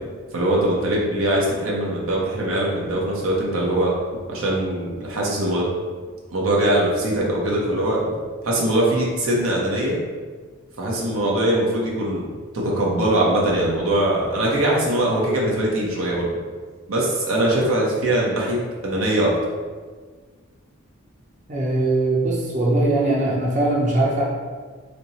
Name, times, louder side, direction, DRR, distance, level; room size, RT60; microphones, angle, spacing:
voice 1, 0.3-3.9 4.3-5.7 6.3-8.0 8.4-10.0 10.8-12.3 12.5-16.3 16.9-18.6 18.8-19.3, right 1 dB, 85° right, -4 dB, 1.0 m, -21 dB
voice 2, 21.5-24.2, right 2 dB, 35° right, -5 dB, 0.7 m, -20 dB
3.3 x 2.9 x 4.1 m, 1.5 s
head